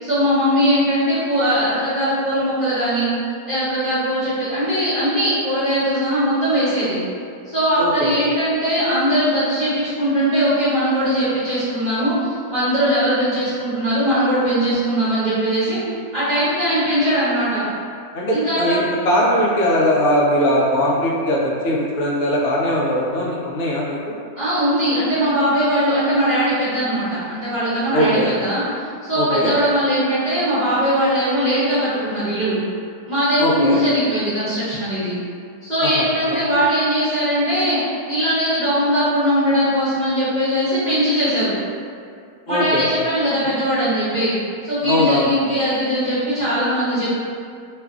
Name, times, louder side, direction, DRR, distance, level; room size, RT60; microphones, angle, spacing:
voice 1, 0.0-3.1 3.5-7.0 7.4-15.8 16.1-17.6 18.3-18.8 24.4-28.6 29.0-32.6 33.1-35.1 35.6-37.8 38.1-41.5 42.5-44.4 44.6-47.2, equal, 35° right, -15 dB, 0.8 m, -20 dB
voice 2, 7.8-8.1 18.1-24.1 27.9-28.3 29.1-29.5 33.4-33.8 35.8-36.4 42.5-42.8 44.8-45.3, equal, 65° left, -5 dB, 0.8 m, -20 dB
2.5 x 2.5 x 2.3 m, 2.2 s
omnidirectional pair, 1.5 m